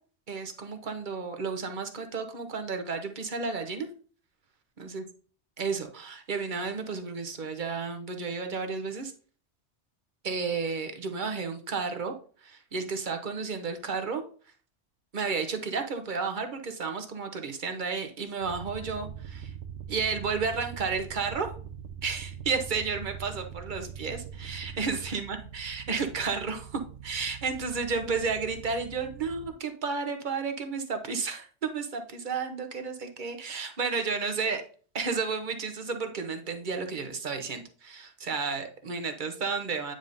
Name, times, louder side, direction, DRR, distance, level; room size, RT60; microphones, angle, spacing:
voice 1, 0.3-3.9 4.8-5.0 5.6-9.1 10.2-12.1 12.4-14.2 15.1-19.5 19.9-21.5 22.0-34.6 34.9-39.9, right 5 dB, 45° right, 6 dB, 1.1 m, -32 dB
sound 1, 18.4-29.5, right 8 dB, 80° right, 1.1 m, -43 dB
9.1 x 5.0 x 2.6 m, 0.41 s
omnidirectional pair, 1.2 m